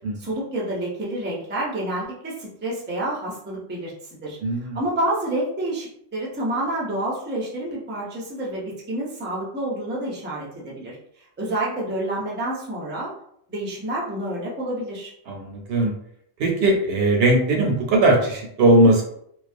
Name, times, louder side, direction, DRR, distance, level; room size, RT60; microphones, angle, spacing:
voice 1, 0.2-3.9 4.2-4.4 4.7-11.0 11.4-13.1 13.5-15.1, right 1 dB, 15° right, -4 dB, 0.4 m, -28 dB
voice 2, 4.4-4.8 15.3-15.9 16.4-19.0, right 2 dB, 70° right, 1 dB, 0.7 m, -19 dB
2.3 x 2.1 x 2.5 m, 0.70 s
omnidirectional pair, 1.1 m